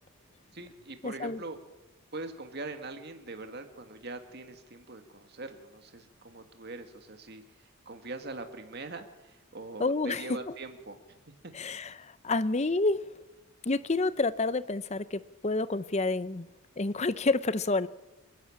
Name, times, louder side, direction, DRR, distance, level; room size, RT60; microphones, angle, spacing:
voice 1, 0.5-1.6 2.1-11.2 11.4-11.5, right 2 dB, 50° right, 2.1 m, -42 dB
voice 2, 1.0-1.4 9.8-10.4 11.5-13.0 13.6-16.5 16.8-17.9, left 3 dB, 30° left, 0.6 m, -29 dB
29.5 x 11.0 x 8.7 m
head